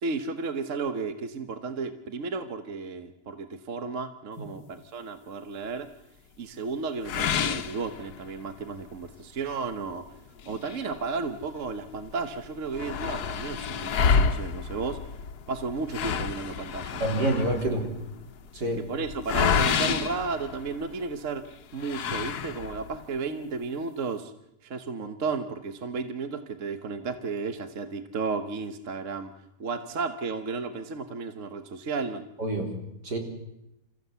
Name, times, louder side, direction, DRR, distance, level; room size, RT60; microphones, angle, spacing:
voice 1, 0.0-5.9 6.4-10.0 10.5-15.0 15.5-17.4 18.8-21.4 21.7-24.3 24.6-29.3 29.6-32.2, right 4 dB, 50° right, 9 dB, 1.5 m, -33 dB
sound 1, 7.0-8.5 9.0-9.1 9.5-9.6 10.4-11.7 12.1-12.2 12.4-21.1 21.8-22.9, left 6 dB, 70° left, 1.5 m, -29 dB
voice 2, 17.0-17.8 18.5-18.8 32.4-32.7 33.0-33.2, right 1 dB, 80° right, 2 dB, 4.2 m, -27 dB
27.5 x 15.0 x 8.2 m, 0.88 s
omnidirectional pair, 1.7 m